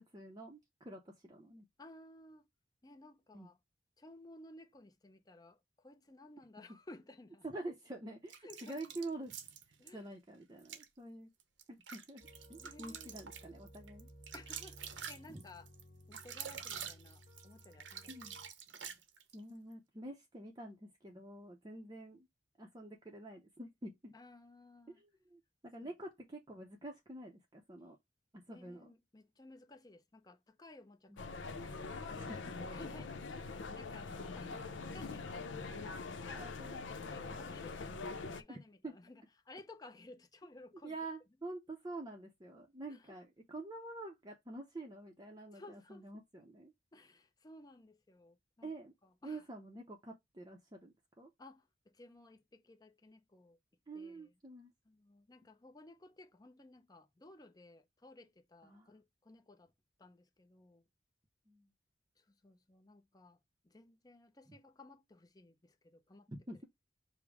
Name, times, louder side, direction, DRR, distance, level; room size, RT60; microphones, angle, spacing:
voice 1, 0.0-1.6 3.3-3.5 7.4-9.3 9.9-11.3 11.7-14.1 15.3-15.4 18.1-18.4 19.3-22.3 22.6-24.1 24.9-28.0 28.5-28.9 31.1-31.2 32.2-32.6 36.2-36.8 38.5-38.9 40.8-46.7 48.6-48.9 49.2-51.3 53.9-54.7 58.6-58.9 61.5-61.7 64.5-64.6 66.3-66.6, right 2 dB, 20° right, 0.6 m, -47 dB
voice 2, 1.8-2.5 2.8-3.6 4.0-7.4 8.4-8.9 9.8-10.2 12.6-13.2 14.3-15.7 16.1-18.4 18.9-19.0 24.1-25.0 25.8-25.9 28.5-36.0 37.1-41.0 42.6-42.7 42.9-43.1 45.5-46.1 46.9-48.7 49.0-49.4 51.4-53.6 53.9-54.3 54.9-59.7 60.0-60.8 62.2-63.4 63.6-66.3, left 2 dB, 20° left, 0.6 m, -57 dB
sound 1, 8.3-9.9 10.6-10.9 11.4-19.4, right 8 dB, 80° right, 0.8 m, -47 dB
sound 2, 12.2-18.5, equal, 40° left, 1.6 m, -58 dB
sound 3, 31.2-38.4, left 4 dB, 85° left, 0.6 m, -43 dB
5.1 x 2.1 x 4.7 m
head